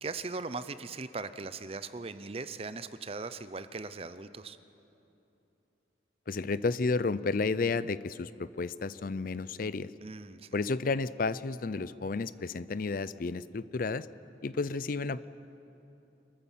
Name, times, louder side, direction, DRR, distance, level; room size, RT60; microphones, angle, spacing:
voice 1, 0.0-4.6 10.0-10.5, right 4 dB, 30° right, 12 dB, 0.6 m, -39 dB
voice 2, 6.3-9.9 10.5-14.1 14.4-15.3, left 4 dB, 50° left, 16 dB, 0.5 m, -32 dB
26.0 x 14.0 x 7.3 m, 3.0 s
head